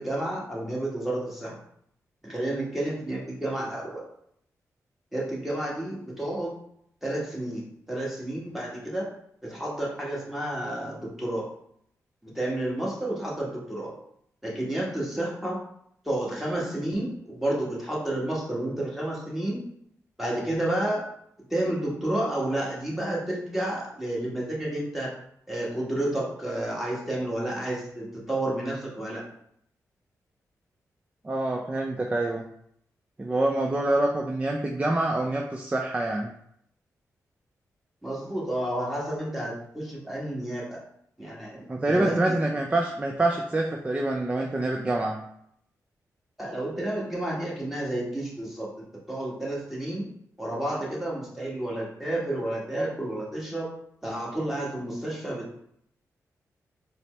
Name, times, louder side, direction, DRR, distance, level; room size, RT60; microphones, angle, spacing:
voice 1, 0.0-1.5 2.2-4.0 5.1-6.5 7.0-9.1 9.4-11.5 12.2-13.9 14.4-15.6 16.0-19.6 20.2-21.1 21.5-25.1 25.5-29.2 38.0-40.8 41.2-42.4 46.4-50.0 50.4-53.7 54.0-55.5, right 1 dB, 5° right, -5 dB, 1.4 m, -30 dB
voice 2, 31.2-32.4 33.2-36.3 41.7-45.2, right 2 dB, 20° right, 1 dB, 0.4 m, -26 dB
4.1 x 2.0 x 3.2 m, 0.71 s
cardioid pair, 50°, 6 cm